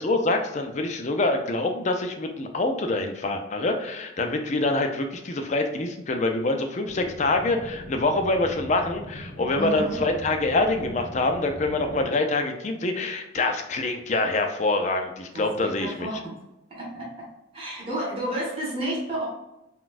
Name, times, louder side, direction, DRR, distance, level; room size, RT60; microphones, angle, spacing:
voice 1, 0.0-16.1, left 2 dB, 35° left, 5 dB, 0.4 m, -25 dB
sound 1, 6.9-12.0, right 1 dB, 65° left, 0.9 m, -40 dB
voice 2, 9.5-10.0 15.3-16.3 16.7-17.3 17.5-19.3, right 1 dB, 30° right, -6 dB, 1.1 m, -31 dB
4.0 x 2.2 x 2.5 m, 0.94 s
head